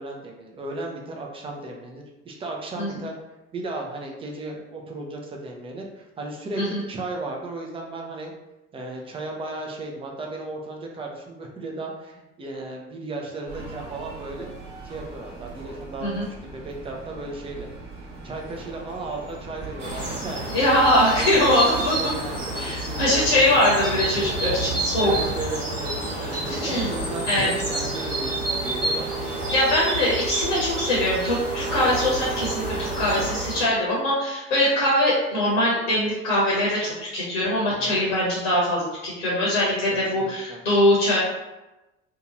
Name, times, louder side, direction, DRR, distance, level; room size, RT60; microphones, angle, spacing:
voice 1, 0.0-3.1 3.5-8.3 8.7-14.5 14.8-16.2 16.4-17.7 18.2-20.5 21.1-23.4 25.0-29.2 37.8-38.1 39.9-40.6, right 2 dB, 15° right, 0 dB, 0.5 m, -35 dB
sound 1, 13.5-20.3, right 3 dB, 50° right, 1.1 m, -41 dB
sound 2, 19.8-33.6, right 2 dB, 80° right, 1.0 m, -29 dB
voice 2, 20.5-22.0 22.5-25.1 26.5-26.9 27.3-27.5 29.5-41.2, left 1 dB, 70° left, -5 dB, 1.0 m, -22 dB
sound 3, 26.9-33.0, right 4 dB, 35° left, 0.5 m, -36 dB
2.7 x 2.3 x 2.9 m, 1.0 s
figure-of-eight pair, 60°, 37 cm